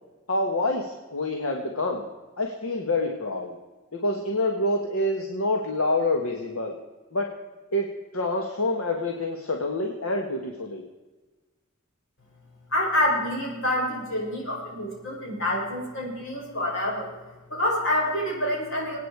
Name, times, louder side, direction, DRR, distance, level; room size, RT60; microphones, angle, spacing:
voice 1, 0.3-2.0 2.4-3.5 3.9-6.7 7.1-7.3 7.7-10.8, left 2 dB, 85° left, 2 dB, 1.6 m, -27 dB
voice 2, 12.7-17.1 17.5-19.0, left 1 dB, 65° left, -2 dB, 5.6 m, -27 dB
25.0 x 9.2 x 4.7 m, 1.2 s
head